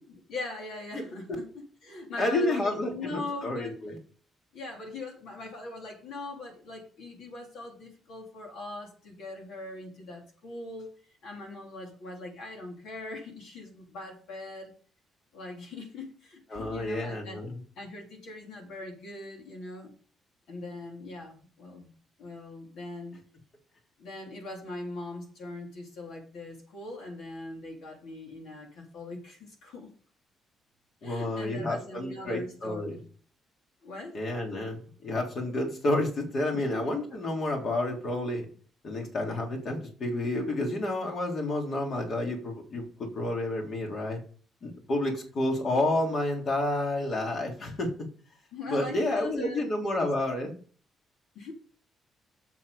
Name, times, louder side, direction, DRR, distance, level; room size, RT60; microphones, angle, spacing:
voice 1, 0.1-3.8 4.5-10.9 11.2-14.7 15.3-17.4 17.7-19.9 20.5-21.9 22.2-23.2 24.0-29.9 31.0-33.0 33.8-34.2 36.5-36.9 48.5-50.1 51.3-51.5, left 2 dB, 80° left, 0 dB, 3.3 m, -41 dB
voice 2, 2.2-4.0 16.5-17.6 31.0-33.0 34.1-38.5 38.8-44.2 44.6-47.9 48.7-50.6, left 1 dB, 55° left, 1 dB, 3.6 m, -30 dB
7.8 x 7.1 x 6.8 m, 0.43 s
cardioid pair, 90°, 0 cm